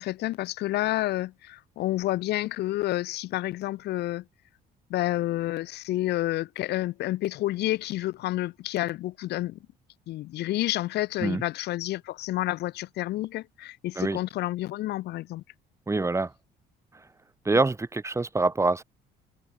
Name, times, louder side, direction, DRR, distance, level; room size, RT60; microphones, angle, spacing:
voice 1, 0.0-4.2 4.9-9.6 10.1-15.4, left 16 dB, 80° left, 6.3 m, -29 dB
voice 2, 15.9-16.3 16.9-17.0 17.4-18.8, right 3 dB, 15° right, 4.9 m, -25 dB
cardioid pair, 110°, 17 cm